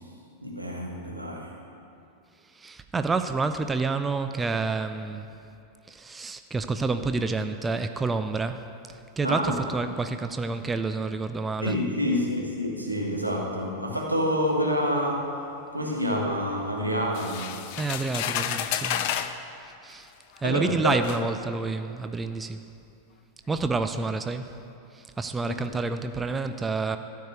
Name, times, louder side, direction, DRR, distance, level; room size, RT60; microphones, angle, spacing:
voice 1, 0.4-1.5 9.2-9.6 11.6-15.3 15.7-17.6 20.4-21.0 25.5-25.6, equal, 90° right, -2 dB, 1.5 m, -27 dB
voice 2, 2.5-5.3 5.9-8.6 8.9-11.8 17.8-19.1 19.8-20.1 20.4-22.6 23.5-24.5 24.9-27.0, right 3 dB, 15° right, 8 dB, 0.4 m, -29 dB
sound 1, 17.1-19.4 20.3-20.4 21.0-21.2, left 10 dB, 45° left, 0.5 m, -30 dB
13.0 x 4.7 x 8.0 m, 2.6 s
figure-of-eight pair, 90°, 0 cm